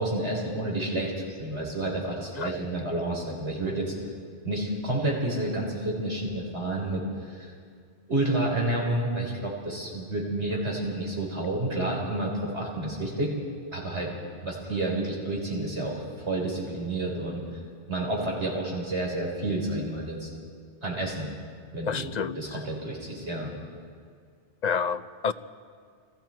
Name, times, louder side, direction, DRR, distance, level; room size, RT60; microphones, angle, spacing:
voice 1, 0.0-3.9 4.4-7.5 8.1-13.3 13.7-14.1 14.4-17.4 17.9-20.3 20.8-21.3 21.7-23.5, right 1 dB, 90° right, -2 dB, 5.2 m, -30 dB
voice 2, 21.9-22.4 24.6-25.3, left 6 dB, 45° left, 13 dB, 0.7 m, -28 dB
29.0 x 21.0 x 4.6 m, 2.1 s
omnidirectional pair, 1.1 m